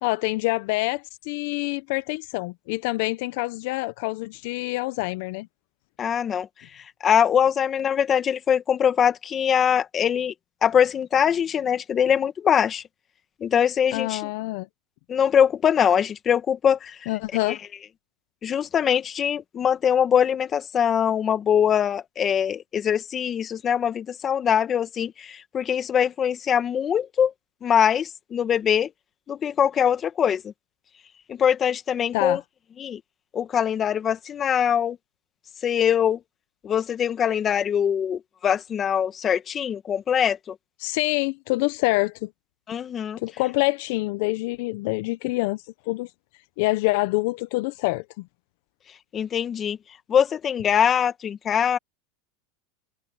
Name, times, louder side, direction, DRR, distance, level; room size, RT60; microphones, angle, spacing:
voice 1, 0.0-5.5 13.9-14.7 17.1-17.6 32.1-32.4 40.8-42.3 43.2-46.1 46.6-48.2, left 22 dB, 65° left, 0.7 m, -26 dB
voice 2, 6.0-6.5 6.7-10.3 10.6-12.8 13.4-14.3 15.1-17.1 17.5-17.6 18.4-27.3 27.6-28.9 29.3-30.5 31.3-32.4 32.8-33.0 33.3-35.0 35.6-36.2 36.6-40.5 42.7-43.2 49.1-49.8 50.1-51.8, left 8 dB, 30° left, 1.6 m, -22 dB
supercardioid pair, 125°, 0 cm